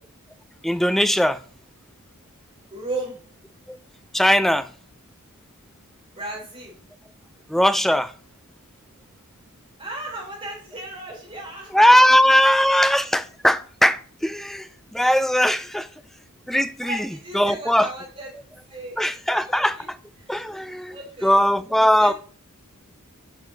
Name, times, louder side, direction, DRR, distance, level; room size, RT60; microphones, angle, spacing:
voice 1, 0.6-1.4 3.7-3.8 4.1-4.7 7.5-8.1 11.7-15.9 16.5-17.1 17.3-17.9 19.0-20.0 20.3-21.0 21.2-22.1, equal, ahead, 0.3 m, -19 dB
voice 2, 2.7-3.2 6.2-6.8 9.8-13.0 15.6-15.8 16.8-18.3 18.7-19.0 19.3-19.4 19.8-19.9 20.3-20.4 20.9-21.4 21.8-22.1, right 2 dB, 30° right, 3.6 m, -36 dB
8.9 x 4.9 x 4.1 m
head